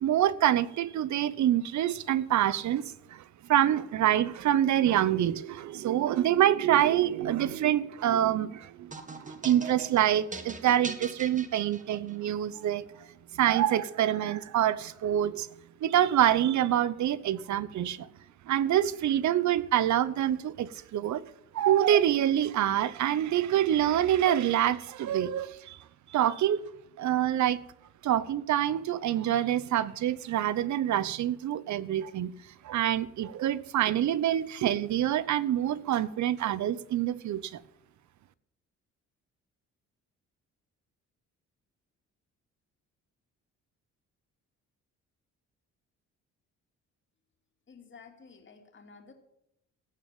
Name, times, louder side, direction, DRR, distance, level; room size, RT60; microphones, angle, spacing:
voice 1, 0.0-2.8 3.1-3.2 3.5-12.8 13.3-15.5 15.8-18.1 18.5-21.2 21.5-25.8 26.1-26.7 27.0-27.6 28.0-32.3 32.6-37.6, right 11 dB, 70° right, 0.9 m, -26 dB
sound 1, 8.9-12.3, right 3 dB, 25° right, 2.0 m, -41 dB
voice 2, 47.7-49.1, left 5 dB, 40° left, 2.8 m, -52 dB
16.5 x 6.5 x 9.0 m
cardioid pair, 90°, 30 cm